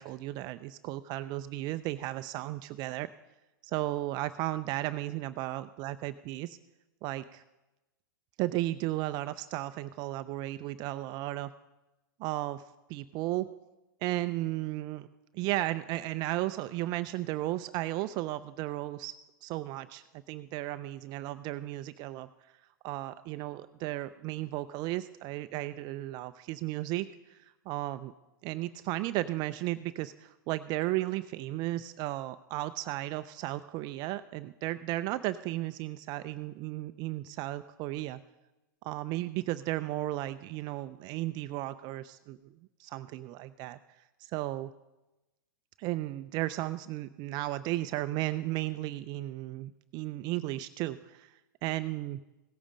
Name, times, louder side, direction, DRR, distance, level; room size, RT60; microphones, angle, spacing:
voice 1, 0.0-3.1 3.6-6.6 7.0-7.4 8.4-11.5 12.2-12.6 12.9-13.5 14.0-15.1 15.3-19.2 19.4-22.3 22.8-28.1 28.4-38.2 38.8-42.4 42.8-43.8 44.2-44.7 45.8-52.2, right 16 dB, 40° right, 12 dB, 0.4 m, -34 dB
17.0 x 8.7 x 5.1 m, 1.0 s
hypercardioid pair, 120°, 11 cm